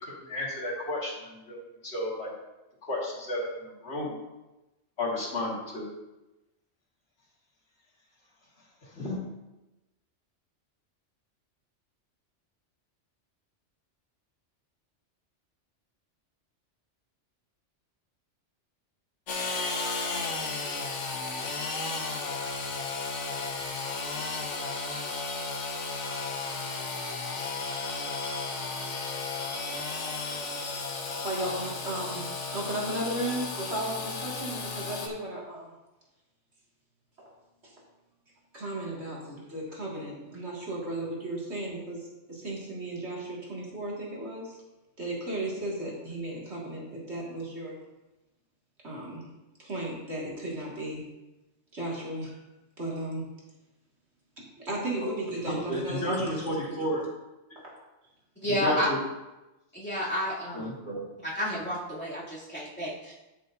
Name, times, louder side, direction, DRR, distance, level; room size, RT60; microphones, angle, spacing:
voice 1, 0.0-2.3 2.9-4.2 5.0-5.8 8.9-9.2 55.0-55.1 55.5-57.0 58.5-59.0 60.5-61.0, left 1 dB, 60° left, -4 dB, 2.3 m, -32 dB
Engine / Sawing, 19.3-35.1, left 3 dB, 85° left, 1.4 m, -34 dB
voice 2, 31.2-35.7 37.2-37.3 37.6-37.7 38.5-44.6 45.0-47.8 48.8-49.3 49.6-51.1 51.7-52.4 52.8-53.3 54.6-56.6, right 1 dB, 65° right, -5 dB, 2.6 m, -35 dB
voice 3, 58.4-58.9 59.7-60.7 61.2-63.1, equal, 10° left, -8 dB, 2.8 m, -31 dB
13.0 x 6.8 x 2.7 m, 1.0 s
omnidirectional pair, 1.2 m